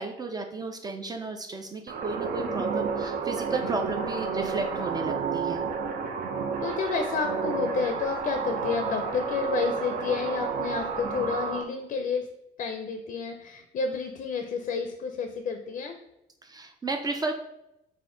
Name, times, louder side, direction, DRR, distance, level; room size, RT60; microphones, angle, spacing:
voice 1, 0.0-5.6 16.4-17.4, right 3 dB, 25° right, 5 dB, 0.4 m, -33 dB
sound 1, 1.9-11.6, right 5 dB, 60° right, 0.7 m, -31 dB
voice 2, 6.6-12.3 12.6-15.9, left 5 dB, 50° left, 6 dB, 0.5 m, -30 dB
4.2 x 2.5 x 3.7 m, 0.86 s
cardioid pair, 110°, 17 cm